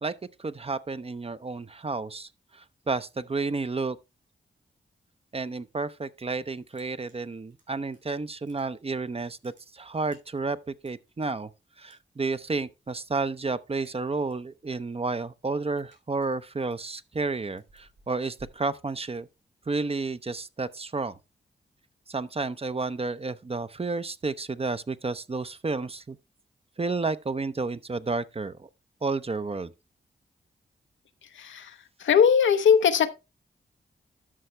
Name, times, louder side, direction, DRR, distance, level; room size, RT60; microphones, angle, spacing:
voice 1, 0.0-4.0 5.3-11.5 11.8-19.3 19.7-21.2 22.1-26.2 26.8-28.7 29.0-29.7, right 3 dB, 30° right, 0.7 m, -31 dB
sound 1, 6.0-6.4 6.6-8.0 8.3-9.0 9.3-11.3 11.9-12.5 12.8-13.1 13.4-14.5 14.9-19.4, right 2 dB, 75° right, 6.5 m, -60 dB
voice 2, 31.2-33.1, left 7 dB, 80° left, 0.8 m, -21 dB
12.5 x 5.7 x 3.2 m
supercardioid pair, 40°, 19 cm